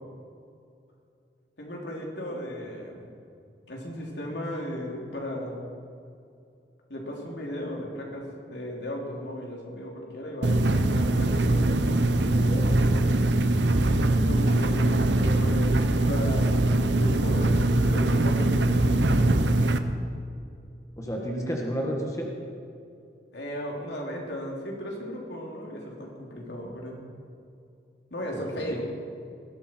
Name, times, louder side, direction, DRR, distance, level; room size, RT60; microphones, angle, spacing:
voice 1, 1.6-3.1 3.7-5.6 6.9-12.7 14.3-19.4 23.3-27.0 28.1-28.8, equal, 80° left, -1 dB, 3.2 m, -36 dB
sound 1, 10.4-19.8, right 2 dB, 85° right, 0.8 m, -22 dB
voice 2, 21.0-22.3 28.3-28.8, equal, 20° left, -1 dB, 1.7 m, -32 dB
19.5 x 13.5 x 4.5 m, 2.5 s
head